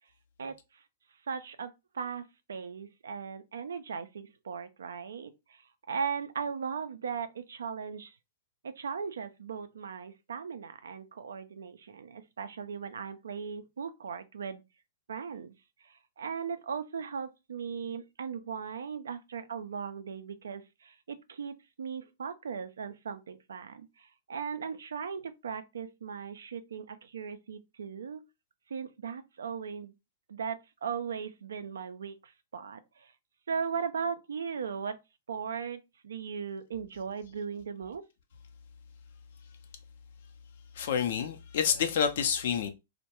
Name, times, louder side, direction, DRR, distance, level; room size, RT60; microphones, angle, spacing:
voice 1, 1.3-5.6 5.9-8.1 8.6-14.6 15.1-15.5 15.8-28.3 28.7-29.9 30.3-33.1 33.5-35.0 35.3-38.1, right 6 dB, 80° right, 0.4 m, -38 dB
voice 2, 40.8-42.7, left 7 dB, 65° left, 0.5 m, -28 dB
2.2 x 2.1 x 2.9 m
hypercardioid pair, 120°, 0 cm